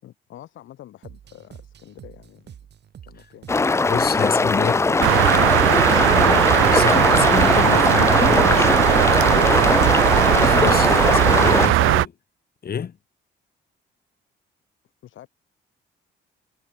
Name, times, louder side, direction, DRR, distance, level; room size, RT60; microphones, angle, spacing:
voice 1, 0.0-2.6 3.1-3.5 15.0-15.3, left 12 dB, 75° left, 3.7 m, -45 dB
sound 1, 1.0-8.7, right 9 dB, 60° right, 4.1 m, -46 dB
sound 2, 3.5-11.7, left 3 dB, 15° left, 0.4 m, -20 dB
voice 2, 3.8-4.8 5.6-8.9 10.4-12.1 12.6-12.9, left 7 dB, 50° left, 5.6 m, -28 dB
sound 3, 5.0-12.1, right 18 dB, 85° right, 0.4 m, -18 dB
cardioid pair, 90°, 20 cm